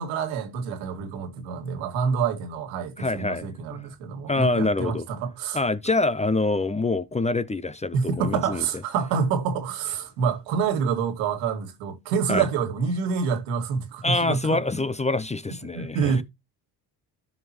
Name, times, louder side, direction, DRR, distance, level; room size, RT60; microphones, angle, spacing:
voice 1, 0.0-5.6 7.9-14.6 15.6-16.2, right 6 dB, 85° right, 2.1 m, -27 dB
voice 2, 3.0-3.8 4.3-5.0 5.5-8.6 12.3-12.4 14.0-16.2, left 2 dB, 15° left, 0.6 m, -25 dB
13.0 x 5.2 x 2.9 m
supercardioid pair, 65°, 48 cm